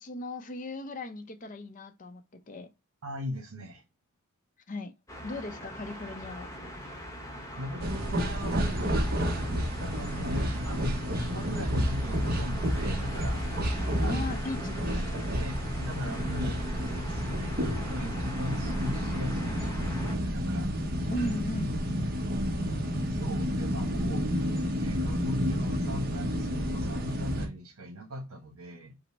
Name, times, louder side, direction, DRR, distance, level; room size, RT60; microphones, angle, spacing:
voice 1, 0.0-2.7 4.7-4.9 5.2-6.5 14.1-15.2 21.1-21.8, left 1 dB, 40° left, 0.5 m, -37 dB
voice 2, 3.0-3.8 7.5-10.9 11.2-13.4 14.0-14.4 15.3-20.7 20.9-21.1 23.1-24.3 24.8-28.9, equal, 85° right, 1.0 m, -39 dB
sound 1, 5.1-20.1, equal, 15° left, 0.8 m, -41 dB
sound 2, 7.8-27.5, equal, 45° right, 0.8 m, -30 dB
5.3 x 2.1 x 4.1 m
head